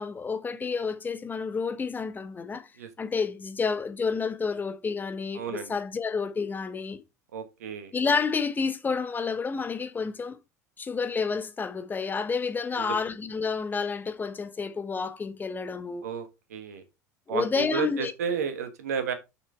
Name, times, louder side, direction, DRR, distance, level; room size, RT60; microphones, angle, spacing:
voice 1, 0.0-2.7 3.0-7.0 7.9-10.4 10.8-16.1 17.3-18.1, left 5 dB, 20° left, 1.1 m, -30 dB
voice 2, 5.3-5.7 7.3-7.9 16.0-16.8 17.3-19.1, right 6 dB, 70° right, 1.4 m, -32 dB
6.4 x 5.9 x 4.6 m
figure-of-eight pair, 70°, 9 cm